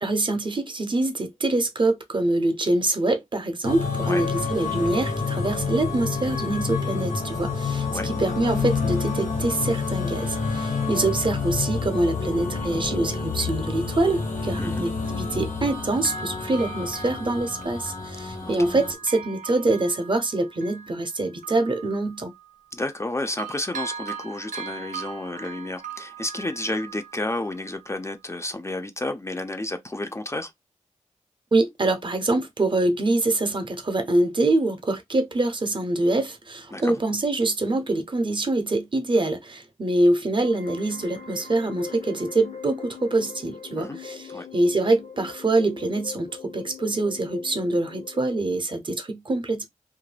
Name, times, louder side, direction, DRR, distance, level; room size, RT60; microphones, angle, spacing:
voice 1, 0.0-22.3 31.5-44.3 44.5-49.7, right 2 dB, 40° right, 0.6 m, -25 dB
sound 1, 3.6-18.9, left 4 dB, 85° left, 1.0 m, -28 dB
Bell, 12.4-12.5 13.4-15.4 15.7-23.1 23.4-28.0 28.4-28.5, right 6 dB, 85° right, 0.5 m, -41 dB
voice 2, 22.7-30.5 36.7-37.0 43.8-44.0 44.3-44.5, left 2 dB, 20° left, 0.4 m, -31 dB
sound 2, 40.4-48.4, left 6 dB, 65° left, 0.6 m, -41 dB
2.3 x 2.1 x 3.2 m
wide cardioid pair, 90°, 13 cm